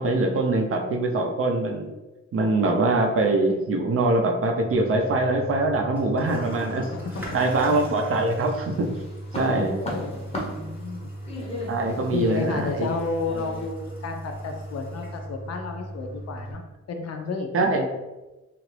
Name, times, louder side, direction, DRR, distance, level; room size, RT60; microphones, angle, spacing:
voice 1, 0.0-1.9 2.3-6.9 7.3-8.9 9.4-9.8 11.7-12.9 17.5-17.8, right 2 dB, 50° right, 2 dB, 0.5 m, -23 dB
Toilet flush, 4.6-16.6, right 1 dB, 5° right, 0.9 m, -38 dB
sound 1, 7.1-8.1 8.5-13.7, left 1 dB, 20° left, 0.7 m, -37 dB
voice 2, 9.5-11.1 12.1-16.6 16.9-17.9, left 3 dB, 60° left, 4 dB, 0.5 m, -32 dB
2.9 x 2.5 x 3.2 m, 1.1 s
cardioid pair, 110°, 30 cm